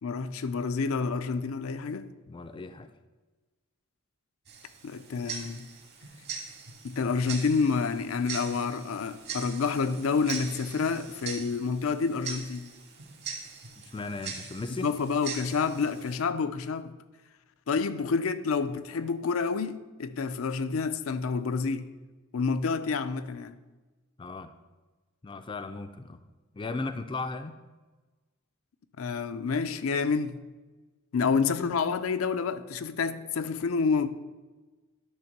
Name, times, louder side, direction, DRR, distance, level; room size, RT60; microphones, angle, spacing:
voice 1, 0.0-2.1 4.8-5.7 6.8-12.7 14.7-16.9 17.7-21.9 22.3-23.6 29.0-30.4 31.1-34.1, left 5 dB, 85° left, 0.5 m, -28 dB
voice 2, 2.3-2.9 13.8-14.9 24.2-24.5 25.2-26.2 26.5-27.6 31.2-31.3, left 3 dB, 25° left, 0.4 m, -36 dB
Tick-tock, 4.5-16.1, right 5 dB, 55° right, 1.5 m, -41 dB
10.5 x 3.5 x 6.6 m
head